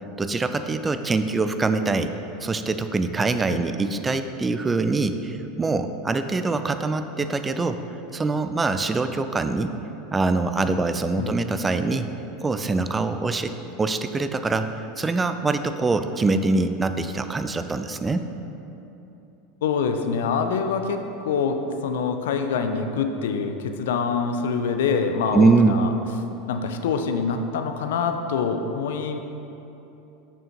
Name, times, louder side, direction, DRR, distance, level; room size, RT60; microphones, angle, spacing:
voice 1, 0.2-2.1 2.4-7.8 8.1-9.7 10.1-12.1 12.4-13.5 13.8-18.3 25.3-25.9, right 3 dB, 15° right, 9 dB, 0.4 m, -23 dB
voice 2, 19.6-21.0 21.2-25.9 26.5-29.2, left 5 dB, 65° left, 7 dB, 0.5 m, -25 dB
6.3 x 6.3 x 4.3 m, 3.0 s
figure-of-eight pair, 80°, 0 cm